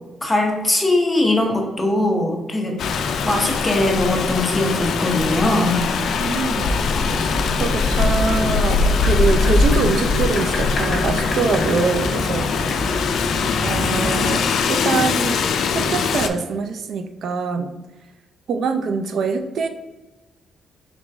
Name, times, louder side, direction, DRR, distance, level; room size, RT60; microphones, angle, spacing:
voice 1, 0.2-2.8 3.2-5.8, left 1 dB, 15° left, 1 dB, 0.8 m, -20 dB
Rain, 2.8-16.3, left 5 dB, 70° left, 0.3 m, -21 dB
voice 2, 6.2-6.7 7.5-12.5 13.6-15.4 15.7-17.7 18.5-19.7, right 5 dB, 65° right, 7 dB, 0.4 m, -24 dB
sound 1, 6.6-14.3, left 1 dB, 40° left, 1.1 m, -29 dB
4.0 x 3.1 x 3.4 m, 1.1 s
cardioid pair, 110°, 0 cm